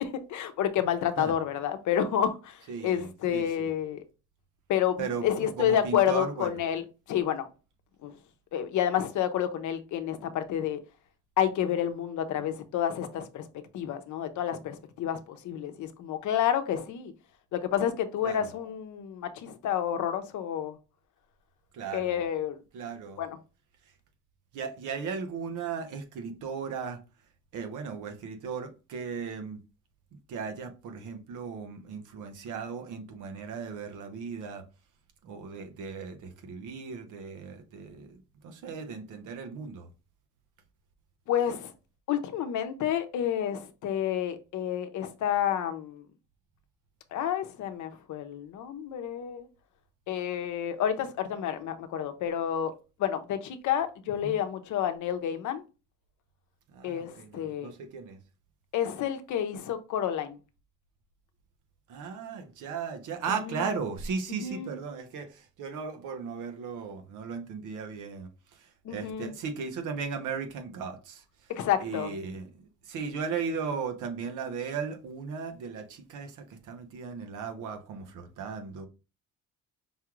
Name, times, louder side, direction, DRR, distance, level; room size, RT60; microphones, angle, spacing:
voice 1, 0.3-4.0 4.7-7.5 8.0-8.2 8.5-10.8 11.4-13.5 13.7-17.1 17.5-20.8 21.9-22.6 23.2-23.4 41.3-41.7 42.1-46.0 47.1-49.5 50.1-52.7 53.0-55.6 56.8-57.7 58.7-60.4 63.5-63.6 64.4-64.8 68.8-69.3 71.5-72.1, left 10 dB, 75° left, 0.7 m, -29 dB
voice 2, 2.7-3.7 5.0-6.6 18.2-18.5 21.7-22.2 22.7-23.2 24.5-27.0 27.5-29.6 30.3-34.6 35.2-39.9 54.2-54.4 56.7-58.2 61.9-71.5 71.8-78.9, right 5 dB, 85° right, 0.9 m, -36 dB
5.4 x 2.4 x 3.0 m
cardioid pair, 90°, 30 cm